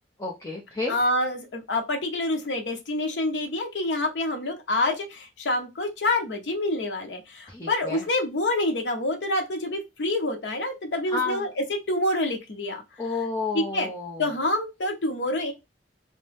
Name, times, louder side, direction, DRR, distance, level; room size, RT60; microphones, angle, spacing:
voice 1, 0.2-1.0 7.5-8.0 11.1-11.4 13.0-14.2, left 3 dB, 20° left, -2 dB, 0.6 m, -30 dB
voice 2, 0.9-12.8 13.5-13.9 14.2-15.5, left 1 dB, 80° left, 3 dB, 0.7 m, -27 dB
2.7 x 2.1 x 3.3 m, 0.23 s
head